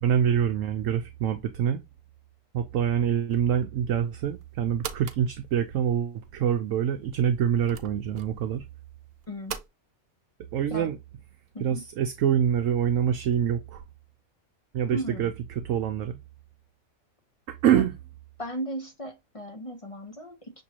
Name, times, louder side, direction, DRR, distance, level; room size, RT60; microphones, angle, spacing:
voice 1, 0.0-1.8 2.5-8.6 10.5-11.0 11.6-13.8 14.7-15.3 15.6-16.2 17.5-17.9, right 9 dB, 70° right, 0.9 m, -25 dB
sound 1, 4.1-9.7, right 8 dB, 90° right, 1.1 m, -43 dB
voice 2, 9.3-9.6 10.7-10.9 11.5-11.8 14.9-15.3 17.7-17.9 18.4-20.6, right 1 dB, 35° left, 0.5 m, -36 dB
6.1 x 3.0 x 2.8 m
omnidirectional pair, 1.5 m